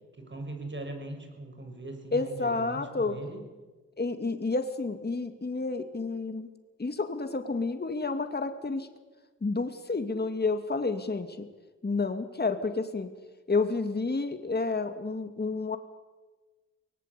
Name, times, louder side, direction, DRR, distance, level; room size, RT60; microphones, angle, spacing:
voice 1, 0.2-3.4, right 2 dB, 35° right, 5 dB, 6.6 m, -40 dB
voice 2, 2.1-3.2 4.0-6.5 6.8-8.9 9.4-11.3 11.8-13.1 13.5-15.8, left 3 dB, 30° left, 7 dB, 2.4 m, -30 dB
24.0 x 18.5 x 8.4 m, 1.3 s
cardioid pair, 55°, 31 cm